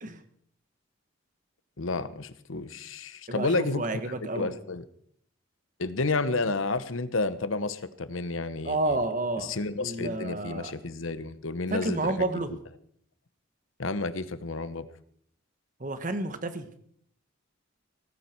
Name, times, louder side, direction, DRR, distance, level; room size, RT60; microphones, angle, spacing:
voice 1, 1.8-4.9 5.8-9.0 9.4-12.4 13.8-14.9, left 3 dB, 90° left, 14 dB, 1.0 m, -31 dB
voice 2, 3.3-4.5 8.6-10.7 11.7-12.5 15.8-16.7, right 2 dB, 40° right, 9 dB, 1.5 m, -30 dB
18.0 x 15.0 x 4.6 m, 0.65 s
head